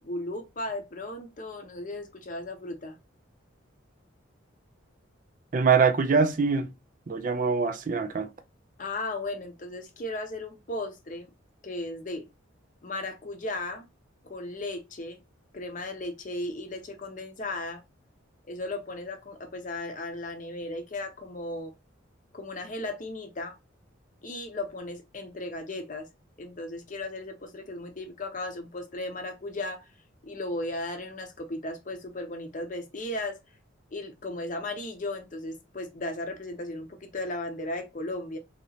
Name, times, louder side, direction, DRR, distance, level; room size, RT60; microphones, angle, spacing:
voice 1, 0.0-3.0 8.8-11.3 11.6-12.3 12.8-13.9 14.2-15.2 15.5-17.8 18.5-21.7 22.3-23.6 24.2-26.1 26.4-29.9 30.2-33.4 33.9-38.4, left 2 dB, 40° left, 0.6 m, -36 dB
voice 2, 5.5-6.7 7.1-8.3, right 5 dB, 40° right, 0.4 m, -23 dB
2.9 x 2.9 x 2.7 m
head